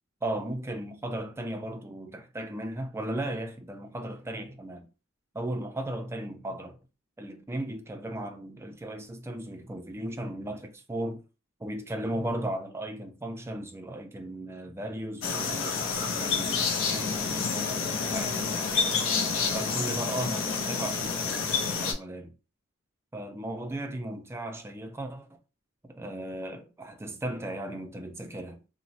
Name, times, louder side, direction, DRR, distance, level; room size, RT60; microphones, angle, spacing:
voice 1, 0.2-4.9 5.3-6.8 7.2-11.2 11.6-19.0 19.5-22.3 23.1-25.4 25.9-28.6, right 1 dB, 15° right, 0.3 m, -36 dB
sound 1, 15.2-21.9, left 5 dB, 70° left, 0.6 m, -29 dB
2.9 x 2.0 x 2.7 m
head